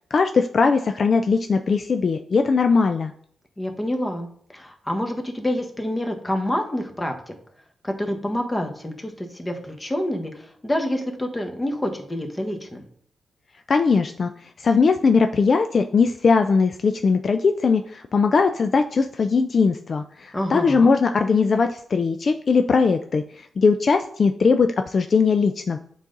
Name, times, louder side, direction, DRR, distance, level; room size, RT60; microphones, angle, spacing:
voice 1, 0.0-3.1 13.7-14.3 14.6-25.8, left 4 dB, 55° left, 7 dB, 0.4 m, -20 dB
voice 2, 3.6-7.3 7.8-12.8 20.3-20.9, left 1 dB, 20° left, 4 dB, 1.3 m, -27 dB
7.3 x 4.0 x 3.9 m, 0.62 s
cardioid pair, 65°, 0 cm